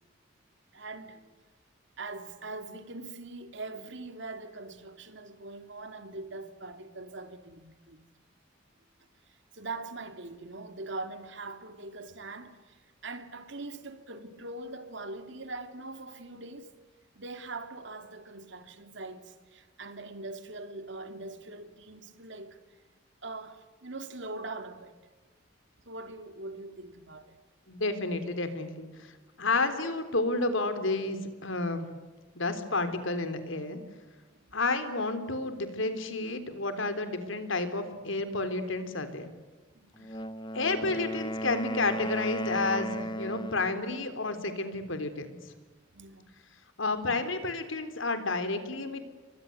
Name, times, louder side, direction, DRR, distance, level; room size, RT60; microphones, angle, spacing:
voice 1, 0.7-1.3 2.0-8.0 9.5-16.7 17.2-22.6 23.2-25.0 25.8-27.3 34.3-34.6 39.7-40.1 45.9-46.3, right 2 dB, 60° right, 2.8 m, -42 dB
voice 2, 27.7-28.9 29.4-31.9 32.4-33.8 34.5-39.3 40.5-45.4 46.8-49.0, left 3 dB, 75° left, 3.7 m, -31 dB
Wind instrument woodwind instrument, 40.0-43.8, equal, 25° left, 1.2 m, -35 dB
30.0 x 24.5 x 8.0 m
head